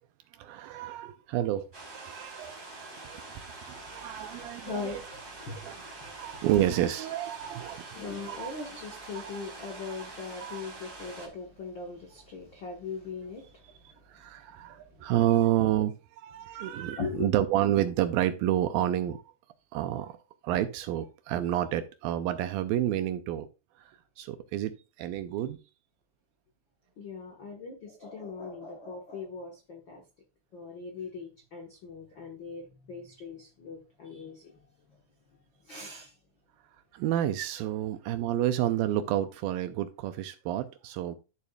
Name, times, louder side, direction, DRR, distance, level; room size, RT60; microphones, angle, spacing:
voice 1, 0.3-2.6 3.1-3.3 3.7-5.0 5.6-8.5 9.2-9.4 9.9-10.1 10.4-10.6 14.1-19.2 19.7-20.2 20.4-23.5 23.8-25.6 35.9-36.0 36.9-41.2, right 12 dB, 80° right, 2.2 m, -30 dB
sound 1, 1.7-11.3, right 3 dB, 20° right, 2.4 m, -45 dB
voice 2, 3.7-6.4 7.9-13.9 14.2-14.3 14.7-15.0 17.0-17.3 27.0-30.0 30.5-34.6 34.9-35.0 35.6-36.1, left 4 dB, 80° left, 1.0 m, -41 dB
12.0 x 7.0 x 2.3 m
omnidirectional pair, 4.5 m